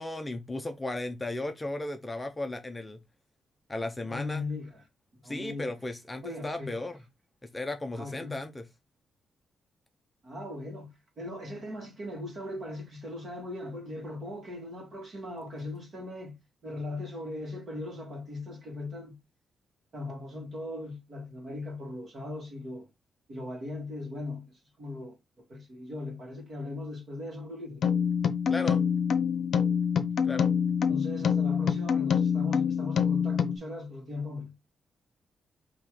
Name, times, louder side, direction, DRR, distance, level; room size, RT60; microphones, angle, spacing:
voice 1, 0.0-3.0 3.7-4.4 5.2-7.0 7.4-8.7 28.5-28.8 30.2-30.5, left 2 dB, 15° left, 0.6 m, -35 dB
voice 2, 4.0-4.8 5.2-5.7 6.2-6.8 8.0-8.4 10.2-16.4 16.6-19.2 19.9-22.9 23.3-27.9 30.8-34.5, left 2 dB, 45° right, 1.8 m, -39 dB
sound 1, 27.8-33.6, left 7 dB, 60° left, 0.6 m, -26 dB
3.6 x 3.0 x 4.7 m
cardioid pair, 135°, 0 cm